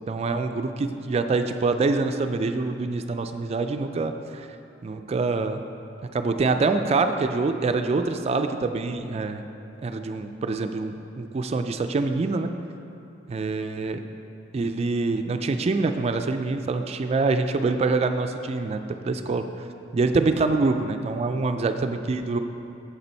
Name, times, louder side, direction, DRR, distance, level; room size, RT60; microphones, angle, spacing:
voice 1, 0.1-4.5 4.8-5.6 6.1-9.4 9.8-12.5 13.3-14.0 14.5-19.4 19.9-22.4, right 3 dB, 35° right, 7 dB, 0.3 m, -25 dB
7.5 x 6.7 x 4.4 m, 2.7 s
head